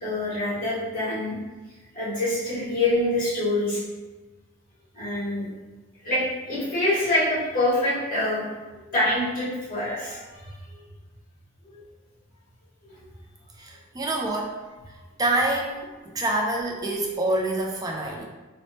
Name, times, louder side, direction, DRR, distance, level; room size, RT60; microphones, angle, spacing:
voice 1, 0.0-1.4 1.9-3.8 4.9-5.4 6.0-8.4 8.7-10.8 11.7-11.8 12.8-13.0, left 1 dB, 45° left, -9 dB, 1.3 m, -26 dB
voice 2, 13.6-14.5 15.2-18.2, right 1 dB, 20° right, 0 dB, 0.3 m, -26 dB
3.1 x 2.0 x 2.7 m, 1.2 s
head